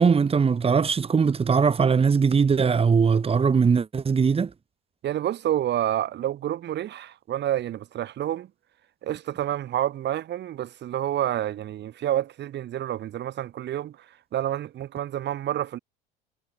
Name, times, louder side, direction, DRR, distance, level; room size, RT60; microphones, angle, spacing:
voice 1, 0.0-4.5, right 5 dB, 20° right, 1.6 m, -20 dB
voice 2, 5.0-8.5 9.0-15.8, right 12 dB, 35° right, 1.6 m, -29 dB
figure-of-eight pair, 75°, 29 cm